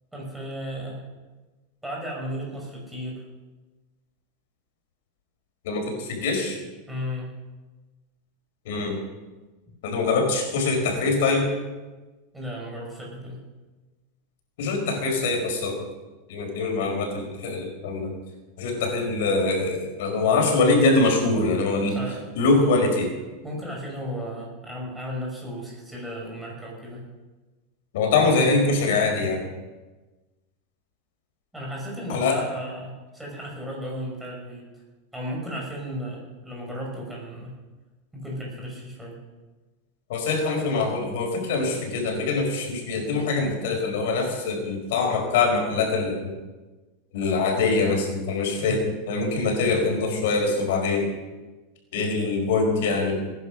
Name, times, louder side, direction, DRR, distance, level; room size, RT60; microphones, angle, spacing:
voice 1, 0.1-1.0 1.8-3.2 6.9-7.3 12.3-13.4 21.9-22.3 23.4-27.0 31.5-34.6 35.1-37.6 38.1-39.2 48.6-48.8, equal, 5° right, -3 dB, 5.6 m, -34 dB
voice 2, 5.6-6.7 8.6-9.0 9.8-11.5 14.6-15.8 16.3-18.1 18.6-22.0 22.3-23.1 27.9-29.4 32.1-32.4 40.1-46.3 47.1-51.1 51.9-53.3, left 3 dB, 70° left, 2 dB, 4.8 m, -23 dB
20.0 x 10.5 x 6.1 m, 1.2 s
supercardioid pair, 150°, 0 cm